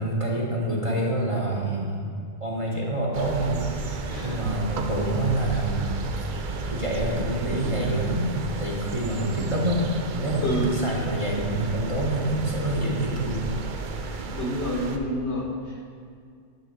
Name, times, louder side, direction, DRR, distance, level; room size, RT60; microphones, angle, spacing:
voice 1, 0.0-2.1 2.4-6.0 6.7-8.3 8.6-13.6, right 1 dB, 30° right, -3 dB, 1.0 m, -27 dB
sound 1, 3.1-15.0, right 3 dB, 55° right, 0.6 m, -33 dB
voice 2, 4.1-4.5 10.4-10.7 14.3-15.8, left 1 dB, 60° left, -2 dB, 1.6 m, -28 dB
9.7 x 3.8 x 6.6 m, 2.3 s
omnidirectional pair, 1.3 m